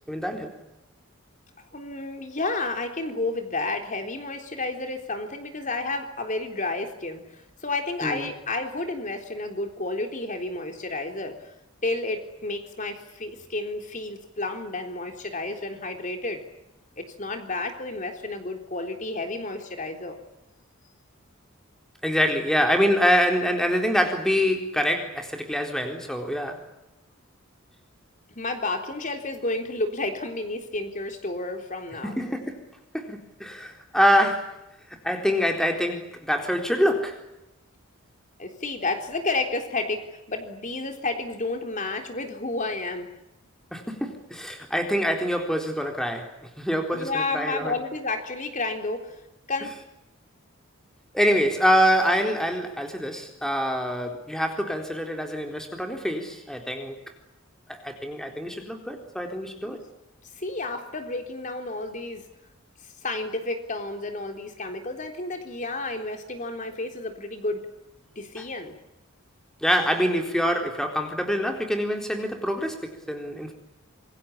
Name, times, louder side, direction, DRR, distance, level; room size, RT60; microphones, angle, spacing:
voice 1, 0.1-0.6 8.0-8.3 22.0-26.6 32.0-32.6 32.9-34.6 35.0-37.2 43.7-47.7 51.1-57.0 57.7-59.8 68.4-68.5 69.6-73.5, equal, ahead, 3 dB, 4.0 m, -25 dB
voice 2, 1.6-7.2 7.6-11.5 11.8-16.4 17.0-20.2 28.4-32.2 38.4-43.1 46.9-49.2 49.5-49.7 59.6-59.8 60.4-62.3 63.0-67.7 68.2-68.7, left 2 dB, 35° left, 5 dB, 3.7 m, -31 dB
27.0 x 23.5 x 8.7 m, 0.89 s
head